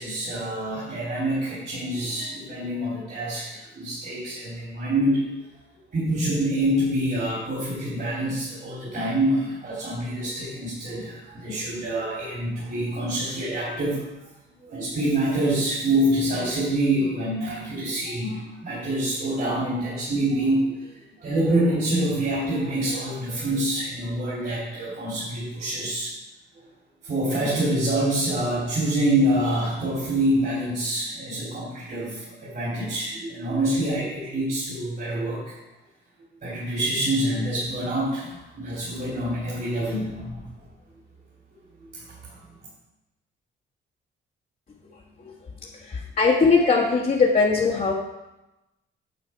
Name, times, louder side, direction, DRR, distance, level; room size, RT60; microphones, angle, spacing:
voice 1, 0.0-5.3 5.9-14.0 14.6-20.8 21.2-26.1 27.0-35.4 36.4-40.4, right 1 dB, 50° right, -8 dB, 3.7 m, -26 dB
voice 2, 45.6-47.9, left 4 dB, 45° left, -4 dB, 1.6 m, -20 dB
9.4 x 7.9 x 4.7 m, 0.98 s
cardioid pair, 110°, 20 cm